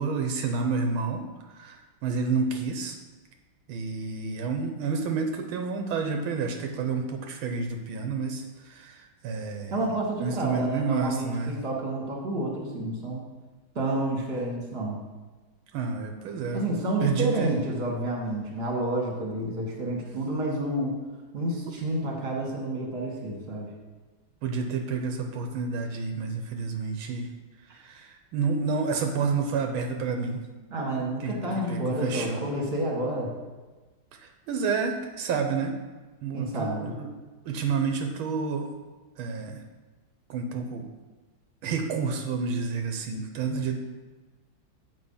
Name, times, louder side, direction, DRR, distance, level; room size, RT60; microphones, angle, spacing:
voice 1, 0.0-3.0 3.7-9.7 10.2-11.5 15.7-16.6 17.0-17.6 24.4-27.3 27.7-30.4 31.2-32.4 34.2-35.8 36.2-37.1 37.4-38.7 39.2-39.6 40.3-40.8 41.6-43.8, right 4 dB, 85° right, 4 dB, 1.5 m, -29 dB
voice 2, 9.7-13.2 13.8-15.0 16.5-21.0 21.3-23.7 30.7-33.3 36.3-37.0, right 1 dB, 30° right, -1 dB, 1.7 m, -30 dB
7.7 x 5.0 x 5.6 m, 1.2 s
omnidirectional pair, 2.3 m